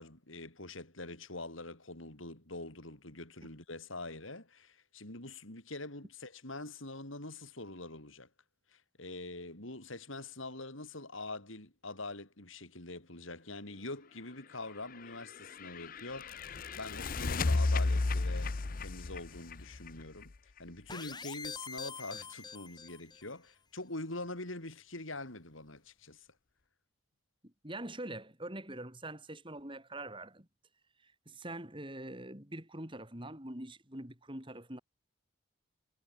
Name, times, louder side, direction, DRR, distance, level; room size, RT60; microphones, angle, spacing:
voice 1, 0.0-8.3 8.7-16.5 16.7-26.3, left 2 dB, 80° left, 6.1 m, -44 dB
sound 1, 14.8-20.6, left 3 dB, 45° left, 0.7 m, -34 dB
sound 2, 20.9-23.3, left 5 dB, 20° left, 6.0 m, -45 dB
voice 2, 27.4-30.5 31.0-34.8, right 1 dB, 25° right, 4.1 m, -44 dB
head